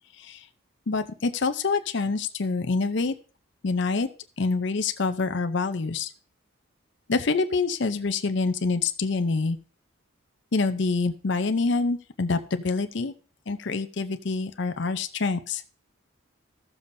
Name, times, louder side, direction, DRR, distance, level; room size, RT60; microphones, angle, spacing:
voice 1, 0.9-3.1 3.6-4.1 4.4-6.1 7.1-9.6 10.5-13.1 13.5-15.6, left 4 dB, 60° left, 8 dB, 0.6 m, -26 dB
15.0 x 7.1 x 2.6 m, 0.37 s
head